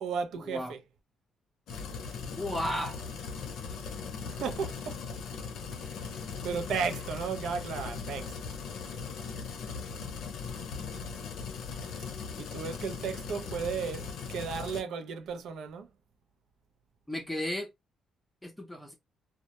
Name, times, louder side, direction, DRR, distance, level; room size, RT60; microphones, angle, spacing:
voice 1, 0.0-0.8 4.3-5.0 5.8-6.1 6.4-8.3 12.4-15.9, right 6 dB, 75° right, 0.5 m, -34 dB
sound 1, 1.7-14.8, left 5 dB, 80° left, 0.6 m, -39 dB
voice 2, 2.3-3.0 17.1-17.7 18.4-18.9, equal, 5° left, 0.6 m, -34 dB
2.2 x 2.0 x 2.8 m
cardioid pair, 90°, 0 cm